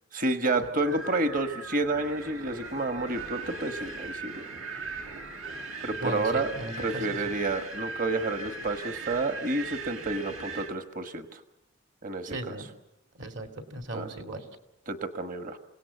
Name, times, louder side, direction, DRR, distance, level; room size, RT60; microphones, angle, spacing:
voice 1, 0.1-4.4 5.8-6.5 6.8-11.4 12.0-12.6 13.9-14.1 14.9-15.6, right 2 dB, 40° right, 8 dB, 1.4 m, -30 dB
Wind, 0.8-10.7, right 3 dB, 80° right, 2.3 m, -39 dB
voice 2, 6.0-7.3 12.2-12.7 13.1-14.4, right 2 dB, 60° right, 5 dB, 2.5 m, -37 dB
27.5 x 18.0 x 8.2 m, 0.92 s
head